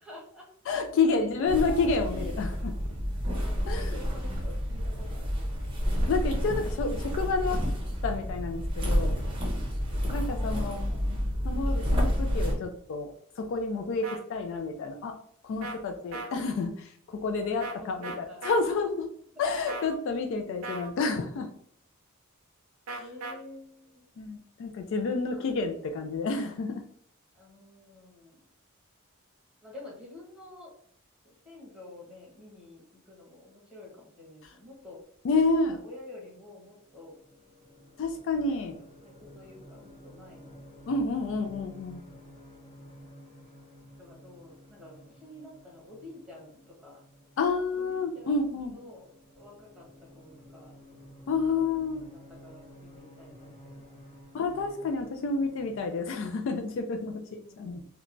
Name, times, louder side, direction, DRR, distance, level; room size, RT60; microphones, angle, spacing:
voice 1, 0.0-0.5 1.2-1.5 1.8-2.4 3.4-5.5 6.6-6.8 10.3-11.0 17.8-18.5 19.3-19.5 23.0-24.0 25.3-25.4 27.3-28.4 29.6-30.7 31.2-35.0 35.5-37.2 38.7-40.6 44.0-47.0 47.7-49.1 49.4-49.9 50.1-50.7 51.5-54.1 57.2-57.9, left 2 dB, 5° right, -5 dB, 0.9 m, -49 dB
voice 2, 0.7-2.7 3.7-4.0 6.1-7.6 8.0-9.2 10.1-10.9 11.4-15.2 15.4-19.1 19.4-21.5 22.9-23.0 24.2-26.8 35.2-35.8 38.0-38.8 40.9-42.0 47.4-48.8 51.3-52.1 54.3-57.2 57.6-57.8, left 4 dB, 60° left, 5 dB, 0.3 m, -29 dB
sound 1, 1.5-12.5, equal, 25° right, 0.6 m, -29 dB
sound 2, 14.0-14.2 15.6-15.8 16.1-16.3 17.6-17.8 18.0-18.6 19.7-20.0 20.6-20.9 22.9-23.3, right 2 dB, 65° right, 0.5 m, -37 dB
sound 3, 36.4-55.9, equal, 25° left, 0.7 m, -52 dB
2.9 x 2.2 x 2.5 m, 0.63 s
head